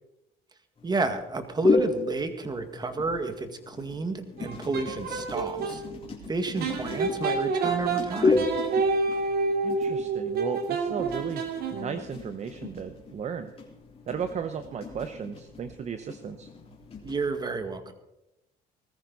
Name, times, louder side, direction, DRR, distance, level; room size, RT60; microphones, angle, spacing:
sound 1, 0.8-17.2, left 3 dB, 35° left, 3.7 m, -33 dB
voice 1, 0.8-5.8 6.3-8.5 17.0-17.9, right 3 dB, 25° right, 8 dB, 1.9 m, -31 dB
sound 2, 4.4-5.8 6.6-12.1, right 4 dB, 70° right, 2.6 m, -28 dB
voice 2, 9.6-13.5 14.1-16.5, right 7 dB, 40° right, 9 dB, 0.9 m, -35 dB
20.0 x 14.0 x 4.1 m, 0.88 s
cardioid pair, 110°, 17 cm